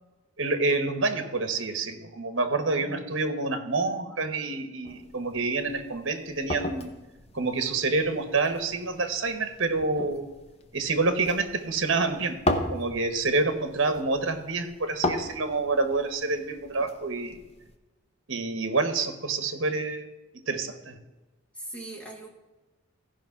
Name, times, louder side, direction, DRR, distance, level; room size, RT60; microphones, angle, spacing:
voice 1, 0.4-6.9 7.3-10.3 10.7-12.4 12.7-17.4 18.3-20.1 20.3-21.0, right 3 dB, 70° right, 8 dB, 1.1 m, -28 dB
sound 1, 4.8-17.7, left 1 dB, 30° left, 0.8 m, -36 dB
voice 2, 21.5-22.3, right 2 dB, 5° left, -1 dB, 1.8 m, -40 dB
14.5 x 5.3 x 5.8 m, 1.1 s
head